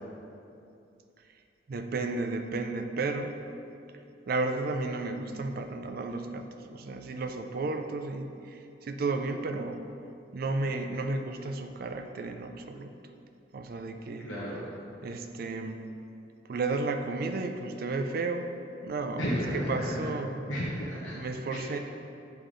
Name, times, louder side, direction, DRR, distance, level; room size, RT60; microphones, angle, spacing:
voice 1, 1.7-3.4 4.3-9.8 10.3-12.9 13.5-14.3 15.0-15.9 16.5-18.5 18.8-19.3 19.5-20.4 21.1-21.8, right 3 dB, 50° right, 6 dB, 0.4 m, -33 dB
voice 2, 14.2-14.7 19.2-20.1 20.5-21.2, equal, 75° left, -7 dB, 0.9 m, -32 dB
8.5 x 3.4 x 3.7 m, 2.6 s
head